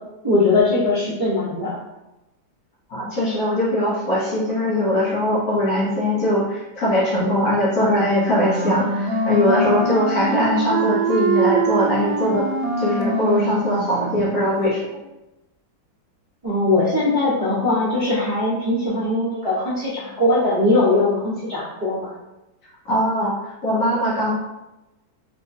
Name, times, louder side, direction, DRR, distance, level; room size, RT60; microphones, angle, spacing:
voice 1, 0.2-1.8 16.4-22.1, left 2 dB, 25° right, -11 dB, 0.7 m, -20 dB
voice 2, 2.9-12.4 12.8-14.8 22.8-24.3, left 1 dB, 60° left, -6 dB, 1.3 m, -21 dB
Wind instrument woodwind instrument, 8.2-14.4, right 2 dB, 85° right, 1.3 m, -23 dB
4.4 x 2.3 x 2.6 m, 0.98 s
omnidirectional pair, 2.0 m